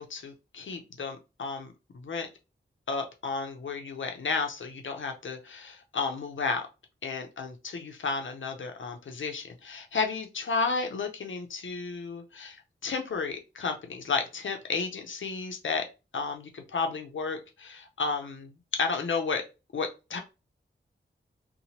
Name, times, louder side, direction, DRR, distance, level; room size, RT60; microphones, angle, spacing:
voice 1, 0.0-2.3 2.9-6.7 7.0-12.6 12.8-15.8 16.1-19.4 19.7-20.2, left 4 dB, 70° left, 5 dB, 0.5 m, -32 dB
2.8 x 2.1 x 3.0 m, 0.28 s
wide cardioid pair, 100°, 20 cm